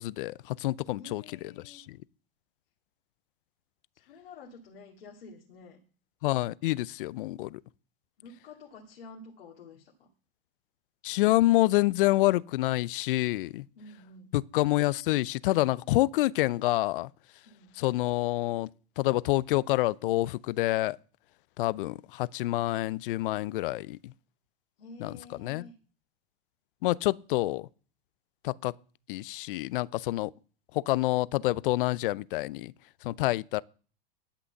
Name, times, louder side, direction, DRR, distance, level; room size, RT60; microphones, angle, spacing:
voice 1, 0.0-1.2 1.6-2.0 6.2-7.6 11.0-13.6 14.3-17.1 17.8-18.7 19.0-21.0 21.6-24.1 25.0-25.7 26.8-27.7 28.4-28.7 29.1-30.3 30.7-32.7 33.0-33.6, left 18 dB, 65° left, 0.6 m, -27 dB
voice 2, 0.9-1.9 3.9-5.8 8.2-10.1 13.8-14.3 17.5-17.7 24.8-25.8, left 3 dB, 80° left, 2.2 m, -50 dB
11.5 x 6.1 x 6.7 m
hypercardioid pair, 100°, 29 cm